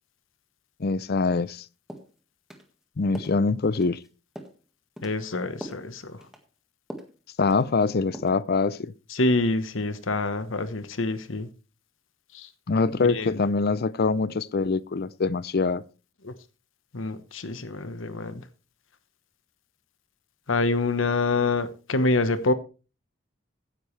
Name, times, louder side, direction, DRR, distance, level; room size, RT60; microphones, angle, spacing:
voice 1, 0.8-1.7 3.0-4.0 7.4-8.9 12.7-15.8, left 4 dB, 50° left, 0.5 m, -24 dB
sound 1, 1.4-1.6 1.9-2.1 2.5-2.7 3.1-3.4 3.7-4.1 4.3-4.6 5.0-5.2 5.6-5.9 6.2-6.4 6.9-7.2 7.5-7.8 8.1-8.4, equal, ahead, 1.7 m, -41 dB
voice 2, 5.0-6.2 9.1-11.5 12.3-12.5 13.1-13.3 16.2-16.3 16.9-18.4 20.5-22.5, left 2 dB, 70° left, 1.1 m, -26 dB
15.5 x 10.0 x 3.3 m
head